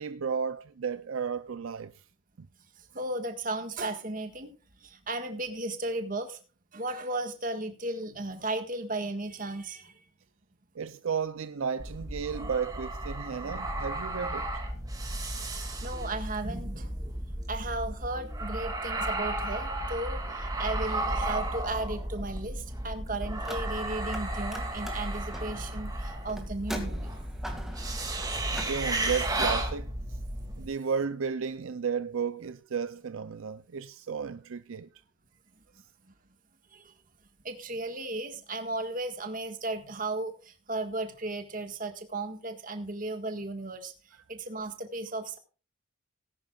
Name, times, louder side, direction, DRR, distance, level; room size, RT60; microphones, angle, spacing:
voice 1, 0.0-1.9 2.4-2.5 10.8-14.5 28.5-30.2 30.5-34.9, right 6 dB, 75° right, 0.5 m, -33 dB
voice 2, 2.8-4.5 4.8-6.4 6.7-10.0 15.6-17.0 17.5-27.1 35.7-36.1 36.7-36.9 37.4-45.4, right 2 dB, 40° right, 1.6 m, -35 dB
sound 1, 11.8-30.6, right 1 dB, 15° right, 2.2 m, -34 dB
Car, 23.4-24.2 24.5-29.6, equal, ahead, 2.0 m, -42 dB
19.0 x 10.5 x 2.4 m
head